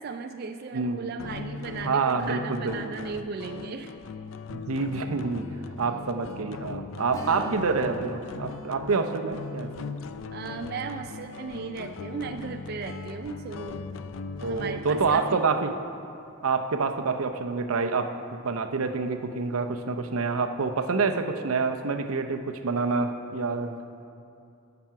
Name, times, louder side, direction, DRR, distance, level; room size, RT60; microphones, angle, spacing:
voice 1, 0.0-4.0 10.3-13.9 14.4-15.4, right 5 dB, 45° right, 6 dB, 0.3 m, -36 dB
voice 2, 0.7-1.1 1.8-2.8 4.5-5.5 5.8-9.9 14.4-15.7 16.4-23.8, right 4 dB, 85° right, 7 dB, 0.6 m, -27 dB
sound 1, 1.2-15.3, left 4 dB, 70° left, 0.4 m, -39 dB
Strum, 7.1-16.3 16.6-16.7 19.3-19.5 19.9-20.0, left 1 dB, 15° left, 0.9 m, -47 dB
13.5 x 6.0 x 5.7 m, 2.5 s
head